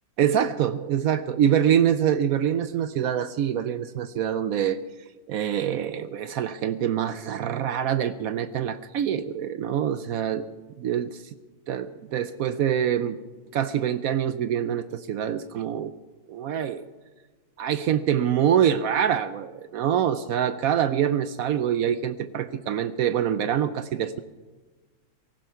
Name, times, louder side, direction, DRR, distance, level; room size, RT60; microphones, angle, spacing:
voice 1, 0.2-4.8 5.3-10.4 10.8-11.2 11.7-13.2 13.5-15.9 16.3-16.8 17.6-24.2, right 9 dB, 70° right, 12 dB, 0.8 m, -25 dB
18.0 x 15.0 x 4.6 m, 1.3 s
omnidirectional pair, 2.0 m